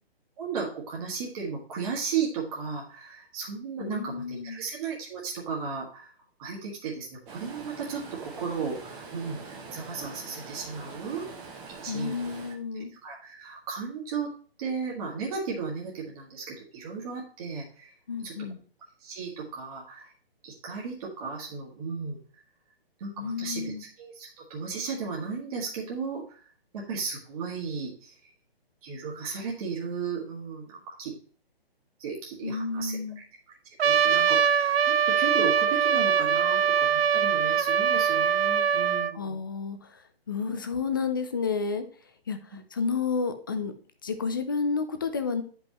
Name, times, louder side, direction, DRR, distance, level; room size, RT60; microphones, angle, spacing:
voice 1, 0.4-6.1 6.4-11.2 11.8-12.2 13.0-14.3 14.6-17.9 18.2-18.3 19.0-20.1 20.4-22.2 23.0-28.2 28.8-31.1 32.0-33.0 33.8-39.4 42.5-42.6, right 5 dB, 35° right, -3 dB, 1.7 m, -35 dB
voice 2, 3.8-4.6 11.9-12.9 18.1-18.6 23.2-23.8 32.4-33.2 39.1-41.8 42.3-43.7 44.0-45.4, left 5 dB, 20° left, 8 dB, 0.4 m, -31 dB
Stream, 7.3-12.5, right 4 dB, 15° right, 0.8 m, -44 dB
Trumpet, 33.8-39.1, right 7 dB, 70° right, 0.5 m, -23 dB
9.9 x 5.3 x 3.0 m, 0.43 s
figure-of-eight pair, 145°, 31 cm